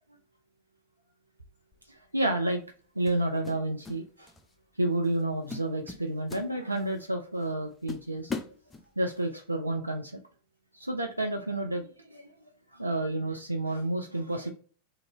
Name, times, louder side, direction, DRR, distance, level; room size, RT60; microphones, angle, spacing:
sound 1, 1.7-2.0 3.1-4.0 4.3-4.6 5.0-5.2 5.5-7.0 7.4-7.5 7.9-9.2, left 4 dB, 15° left, 0.5 m, -39 dB
voice 1, 1.9-2.6 3.0-4.3 4.8-8.3 9.0-10.1 10.7-12.3 12.7-14.5, right 1 dB, 85° right, 0.3 m, -30 dB
2.8 x 2.6 x 3.8 m
figure-of-eight pair, 90°, 0 cm